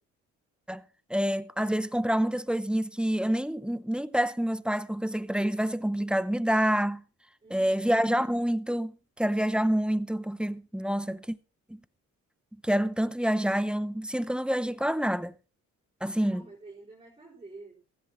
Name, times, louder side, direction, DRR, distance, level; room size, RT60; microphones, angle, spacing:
voice 1, 1.1-7.0 7.5-8.9 9.2-11.4 12.6-15.3 16.0-16.4, equal, 5° right, 0.6 m, -27 dB
voice 2, 7.4-8.0 16.1-18.0, right 3 dB, 20° right, 4.5 m, -50 dB
16.0 x 14.5 x 3.0 m
cardioid pair, 90°, 30 cm